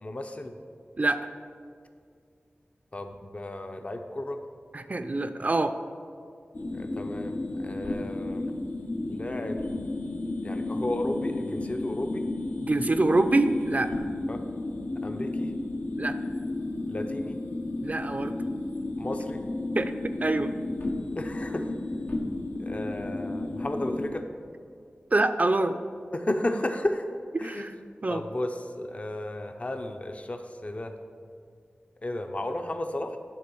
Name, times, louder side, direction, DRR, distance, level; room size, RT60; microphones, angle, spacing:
voice 1, 0.0-0.5 2.9-4.4 6.7-8.5 9.1-9.6 10.4-12.2 14.3-14.4 15.0-15.5 16.9-17.3 19.0-19.4 21.2-21.7 22.6-24.2 26.1-27.0 27.4-27.7 28.1-30.9 32.0-33.2, left 1 dB, 35° left, 5 dB, 0.6 m, -33 dB
voice 2, 1.0-1.3 4.7-5.8 12.6-14.1 16.0-16.2 17.8-18.4 19.8-20.5 25.1-25.8 27.3-27.7 28.0-28.2, right 2 dB, 40° right, 9 dB, 0.4 m, -25 dB
sound 1, 6.5-24.1, left 2 dB, 70° left, 0.8 m, -33 dB
9.6 x 3.8 x 7.0 m, 2.2 s
wide cardioid pair, 65°, 4 cm